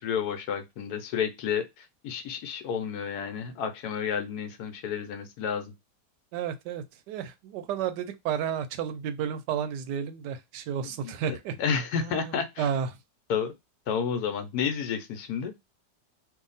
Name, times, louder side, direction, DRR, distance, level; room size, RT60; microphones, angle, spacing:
voice 1, 0.0-5.7 10.8-12.7 13.3-13.5 13.9-15.5, left 7 dB, 75° left, 1.1 m, -31 dB
voice 2, 6.3-11.6 12.0-12.9, right 8 dB, 85° right, 1.2 m, -32 dB
2.8 x 2.5 x 3.9 m
omnidirectional pair, 1.8 m